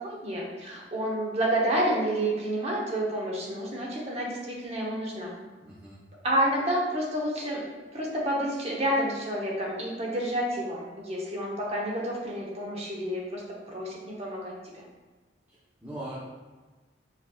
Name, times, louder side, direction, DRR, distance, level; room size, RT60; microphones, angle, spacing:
voice 1, 0.0-5.3 6.2-7.6 7.9-13.4 13.7-14.8, right 1 dB, 35° right, -3 dB, 1.0 m, -29 dB
voice 2, 5.6-6.0 15.5-16.2, right 1 dB, 10° right, -10 dB, 0.9 m, -41 dB
4.9 x 4.4 x 2.4 m, 1.3 s
head